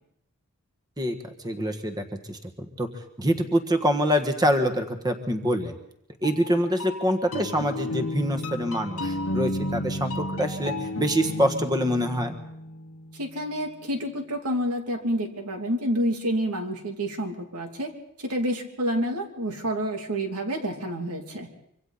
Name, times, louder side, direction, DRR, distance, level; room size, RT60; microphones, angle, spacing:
voice 1, 1.4-2.9 3.2-5.8 6.2-12.3, equal, 20° right, 6 dB, 1.5 m, -25 dB
sound 1, 3.2-4.4 6.2-13.9, left 1 dB, 70° left, 1.3 m, -33 dB
voice 2, 13.2-17.9 18.2-21.5, equal, 85° right, 3 dB, 2.8 m, -28 dB
25.5 x 24.5 x 4.1 m, 0.75 s
head